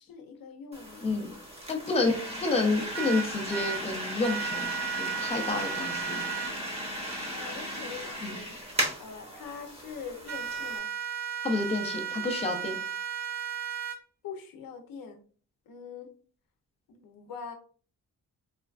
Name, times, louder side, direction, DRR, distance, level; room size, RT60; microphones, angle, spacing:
voice 1, 0.0-1.4 1.9-2.4 7.3-8.6 9.0-10.9 14.2-15.2 15.7-16.1 16.9-17.5, left 6 dB, 80° left, 5 dB, 0.6 m, -43 dB
sound 1, 0.7-10.8, equal, 20° right, 0.7 m, -36 dB
voice 2, 1.7-4.7 5.0-6.2 8.2-8.4 11.4-12.8, left 3 dB, 20° left, 4 dB, 0.4 m, -29 dB
sound 2, 2.9-3.8 4.2-6.5 10.3-14.0, right 7 dB, 50° right, 0.6 m, -34 dB
3.2 x 2.2 x 2.3 m, 0.42 s
wide cardioid pair, 135°, 35 cm